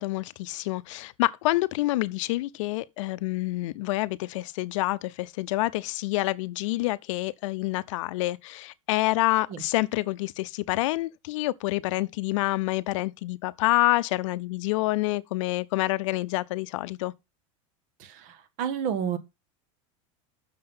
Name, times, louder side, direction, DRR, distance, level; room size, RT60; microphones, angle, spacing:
voice 1, 0.0-17.1, left 19 dB, 70° left, 0.6 m, -27 dB
voice 2, 18.0-19.2, right 8 dB, 50° right, 1.5 m, -30 dB
7.7 x 6.6 x 5.5 m
supercardioid pair, 140°, 17 cm